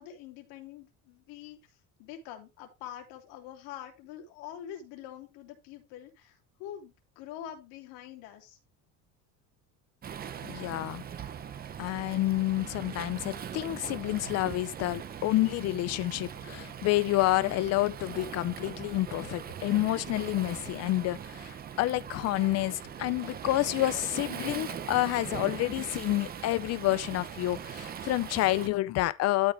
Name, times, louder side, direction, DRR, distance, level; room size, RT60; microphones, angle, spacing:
voice 1, 0.0-8.6, left 10 dB, 85° left, 3.2 m, -45 dB
Waves surf, 10.0-28.7, right 8 dB, 25° right, 0.7 m, -41 dB
voice 2, 10.4-11.0 11.8-29.5, left 17 dB, 40° left, 0.5 m, -29 dB
12.5 x 5.8 x 3.3 m
cardioid pair, 175°, 40 cm